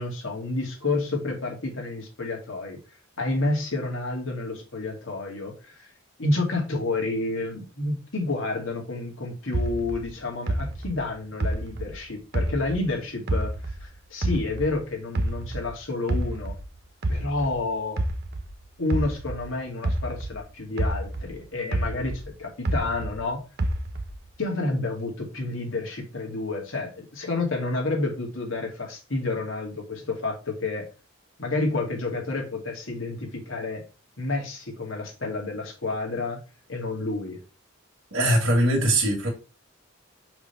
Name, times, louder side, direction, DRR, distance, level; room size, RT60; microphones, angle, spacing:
voice 1, 0.0-2.8 3.2-5.9 6.2-13.5 13.8-16.6 17.1-18.1 18.8-23.4 24.4-30.9 31.4-33.8 34.2-36.4 36.7-37.4, left 2 dB, 75° left, 2.4 m, -29 dB
sound 1, 9.5-12.9 13.3-15.7 16.1-20.4 20.8-23.2 23.6-24.3, right 1 dB, 50° right, 0.8 m, -28 dB
voice 2, 38.1-39.3, right 1 dB, 70° right, 2.2 m, -21 dB
5.9 x 3.5 x 5.8 m
head